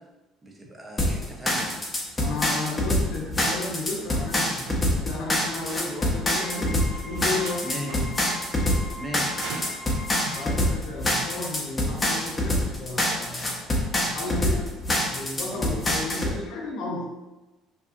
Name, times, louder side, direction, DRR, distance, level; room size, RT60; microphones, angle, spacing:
voice 1, 0.4-1.8 7.6-8.1 9.0-9.7 15.5-15.7, equal, 25° right, 0 dB, 0.6 m, -38 dB
sound 1, 1.0-16.3, left 1 dB, 25° left, 0.7 m, -25 dB
voice 2, 2.2-8.1 10.3-13.6 14.0-14.7 15.1-17.1, left 3 dB, 70° left, 0 dB, 0.6 m, -34 dB
sound 2, 4.4-5.4 5.7-5.8 6.9-8.0 9.4-10.4, right 3 dB, 85° right, 0.4 m, -39 dB
Wind instrument woodwind instrument, 6.2-10.8, left 2 dB, 50° left, 1.0 m, -41 dB
2.8 x 2.3 x 2.4 m, 1.1 s
hypercardioid pair, 70°, 0 cm